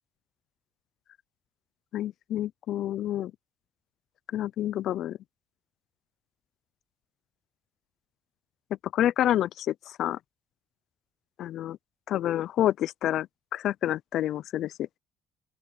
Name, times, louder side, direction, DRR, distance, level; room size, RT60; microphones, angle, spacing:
voice 1, 1.9-3.3 4.3-5.2 8.9-10.2 11.4-11.8 12.1-13.3 13.5-14.7, left 12 dB, 55° left, 0.3 m, -28 dB
open air
cardioid pair, 160°, 0 cm